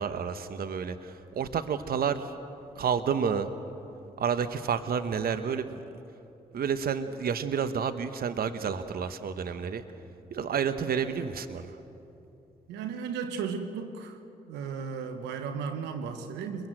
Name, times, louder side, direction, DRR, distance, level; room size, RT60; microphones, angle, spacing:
voice 1, 0.0-2.3 2.8-3.5 4.2-5.8 6.5-9.8 10.3-11.7, right 7 dB, 60° right, 10 dB, 1.1 m, -30 dB
voice 2, 12.7-14.2 14.5-16.7, right 6 dB, 85° right, 7 dB, 1.1 m, -35 dB
23.5 x 22.0 x 7.9 m, 2.8 s
hypercardioid pair, 45°, 17 cm